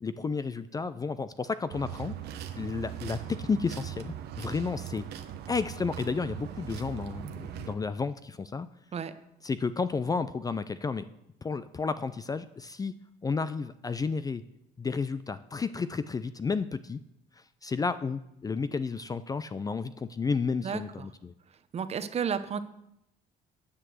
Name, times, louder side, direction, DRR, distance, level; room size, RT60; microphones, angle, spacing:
voice 1, 0.0-2.2 2.6-5.0 5.5-8.7 9.4-11.0 11.4-12.9 13.2-14.4 14.8-17.0 17.6-21.3, left 4 dB, 20° left, 13 dB, 0.4 m, -32 dB
sound 1, 1.7-7.7, right 10 dB, 75° right, 1.1 m, -40 dB
voice 2, 20.6-21.1 21.7-22.6, right 7 dB, 40° right, 12 dB, 0.8 m, -32 dB
9.5 x 6.0 x 7.7 m, 0.82 s
cardioid pair, 110°, 17 cm